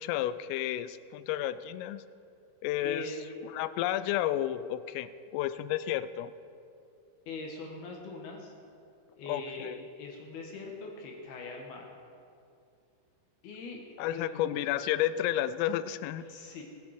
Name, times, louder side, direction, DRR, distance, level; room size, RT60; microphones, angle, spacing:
voice 1, 0.0-2.1 2.6-3.2 3.4-6.3 9.3-9.8 14.0-16.2, left 12 dB, 85° left, 14 dB, 3.1 m, -31 dB
voice 2, 2.8-3.2 7.3-8.5 9.1-9.7 10.0-11.9 13.4-13.8 14.1-14.4 16.3-16.6, left 3 dB, 65° left, 0 dB, 2.8 m, -42 dB
21.0 x 8.9 x 4.9 m, 2.5 s
omnidirectional pair, 5.8 m